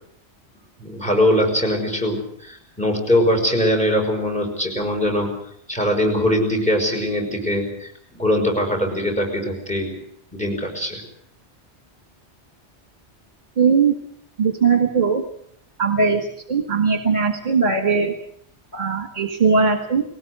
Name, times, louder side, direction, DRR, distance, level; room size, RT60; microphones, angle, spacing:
voice 1, 0.8-5.3 5.7-9.9 10.3-11.0, equal, 5° left, 3 dB, 5.4 m, -21 dB
voice 2, 13.6-14.0 14.4-15.2 15.8-16.2 16.5-18.1 18.7-20.0, right 5 dB, 40° right, 5 dB, 1.8 m, -19 dB
21.0 x 19.0 x 8.0 m, 0.68 s
omnidirectional pair, 1.2 m